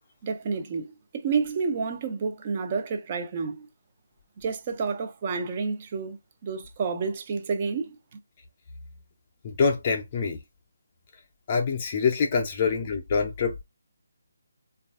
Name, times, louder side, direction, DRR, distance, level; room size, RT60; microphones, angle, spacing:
voice 1, 0.2-3.7 4.4-8.0, right 5 dB, 35° right, 0.4 m, -30 dB
voice 2, 9.4-10.4 11.5-13.6, left 5 dB, 35° left, 0.4 m, -25 dB
3.2 x 2.3 x 2.2 m
figure-of-eight pair, 155°, 0 cm